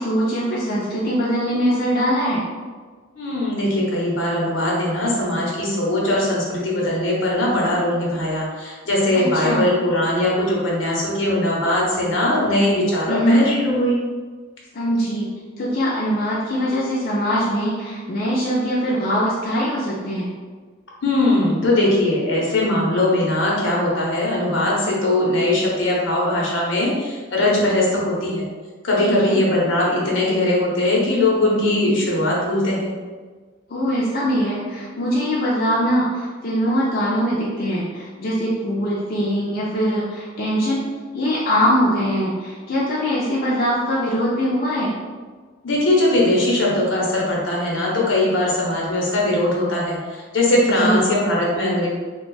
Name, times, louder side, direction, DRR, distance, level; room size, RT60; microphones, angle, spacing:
voice 1, 0.0-2.4 9.2-9.6 13.1-13.4 14.7-15.3 15.6-20.3 29.0-29.4 33.7-40.9 41.1-44.9 50.8-51.0, equal, 50° left, -5 dB, 0.5 m, -22 dB
voice 2, 3.2-14.0 21.0-28.4 28.8-32.9 45.6-51.9, left 1 dB, 85° left, -4 dB, 0.9 m, -20 dB
2.5 x 2.4 x 3.8 m, 1.4 s
head